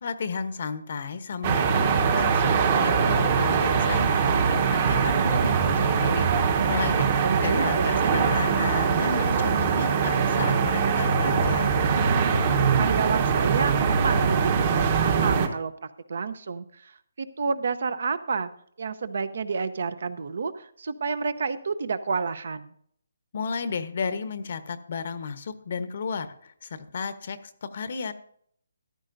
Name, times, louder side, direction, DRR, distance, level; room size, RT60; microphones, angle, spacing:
voice 1, 0.0-7.1 7.4-11.7 23.3-28.1, left 5 dB, 50° left, 12 dB, 0.9 m, -33 dB
sound 1, 1.4-15.5, right 6 dB, 35° right, 1.0 m, -22 dB
voice 2, 7.2-8.1 12.7-15.7 16.1-16.9 17.2-18.5 18.8-22.7, right 5 dB, 60° right, 14 dB, 0.7 m, -29 dB
14.0 x 11.0 x 2.6 m, 0.64 s
hypercardioid pair, 165°, 0 cm